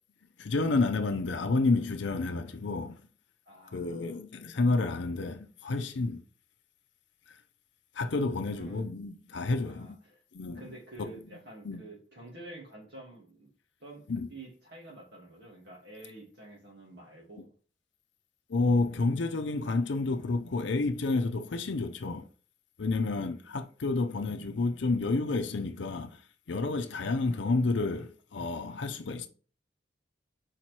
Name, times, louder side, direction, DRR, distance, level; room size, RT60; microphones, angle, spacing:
voice 1, 0.4-3.0 3.7-6.2 8.0-10.0 10.3-10.6 11.0-11.1 11.6-11.8 14.1-14.3 18.5-22.3 22.8-26.2 26.5-29.3, left 3 dB, 90° left, 0.6 m, -30 dB
voice 2, 3.5-4.2 8.5-8.9 9.6-10.2 10.5-13.5 13.8-17.5 23.0-23.5, right 2 dB, 65° right, 2.7 m, -49 dB
4.9 x 4.4 x 4.6 m
head